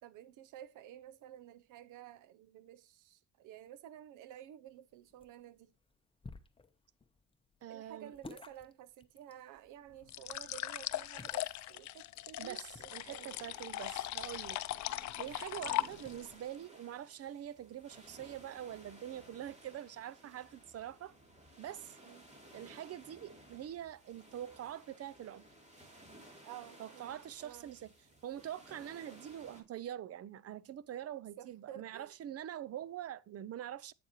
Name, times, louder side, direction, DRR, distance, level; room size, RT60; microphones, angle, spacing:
voice 1, 0.0-5.7 7.7-13.4 15.6-15.8 22.0-22.3 26.4-27.7 31.4-32.1, right 11 dB, 90° right, 0.7 m, -52 dB
sound 1, 4.7-18.7, left 3 dB, 20° left, 0.9 m, -59 dB
voice 2, 7.6-8.2 12.4-14.6 15.2-21.1 21.6-22.0 22.5-25.5 26.8-27.9 28.2-33.9, right 11 dB, 55° right, 0.6 m, -44 dB
sound 2, 10.1-16.3, left 15 dB, 70° left, 0.5 m, -39 dB
sound 3, 13.0-29.6, right 1 dB, 20° right, 3.2 m, -58 dB
8.2 x 7.2 x 3.1 m
cardioid pair, 90°, 30 cm